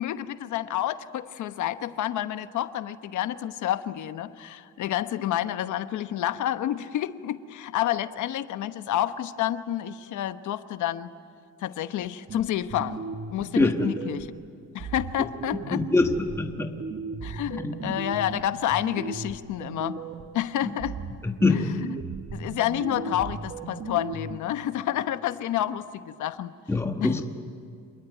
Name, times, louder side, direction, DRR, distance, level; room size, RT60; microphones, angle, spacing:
voice 1, 0.0-11.1 11.6-13.0 13.3-14.3 14.7-15.8 17.2-20.0 20.3-21.0 21.5-22.0 22.3-26.5 27.0-27.2, left 12 dB, 85° left, 11 dB, 1.1 m, -29 dB
sound 1, 12.3-14.4 14.8-20.4 20.8-24.4, right 5 dB, 45° right, 1.4 m, -37 dB
voice 2, 13.6-13.9 15.2-15.3 15.7-16.7 17.6-17.8 20.6-20.7 21.2-21.9 26.7-27.2, left 3 dB, 10° left, 4 dB, 1.3 m, -24 dB
27.0 x 21.0 x 9.3 m, 2.3 s
cardioid pair, 140°, 29 cm